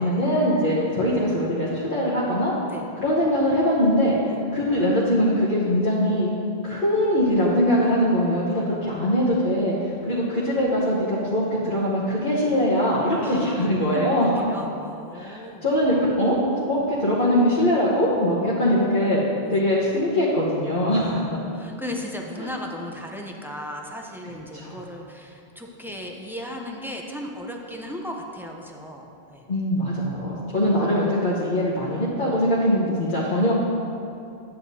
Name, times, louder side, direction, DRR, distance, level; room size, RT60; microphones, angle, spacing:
voice 1, 0.0-2.5 3.0-4.1 4.5-6.3 6.6-14.3 15.1-16.4 16.7-19.2 19.5-21.1 22.4-22.5 24.5-24.8 29.5-33.5, equal, 55° left, -8 dB, 1.3 m, -22 dB
voice 2, 13.1-15.7 18.5-18.8 19.4-19.6 21.0-29.5, left 1 dB, 5° right, 0 dB, 0.5 m, -36 dB
9.3 x 9.1 x 2.8 m, 2.6 s
omnidirectional pair, 1.1 m